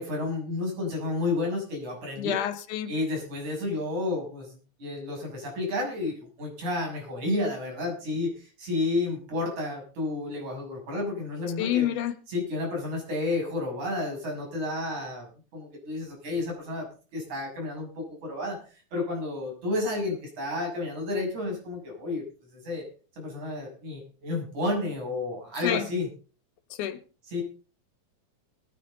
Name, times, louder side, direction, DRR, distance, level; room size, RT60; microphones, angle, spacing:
voice 1, 0.0-2.4 2.9-11.9 12.3-16.9 17.1-22.8 23.2-26.1 27.3-27.4, left 2 dB, 70° right, 0 dB, 7.9 m, -31 dB
voice 2, 2.2-2.9 11.6-12.2 25.6-25.9 26.7-27.0, left 11 dB, 85° left, 12 dB, 2.7 m, -28 dB
21.0 x 9.9 x 3.9 m, 0.37 s
omnidirectional pair, 3.5 m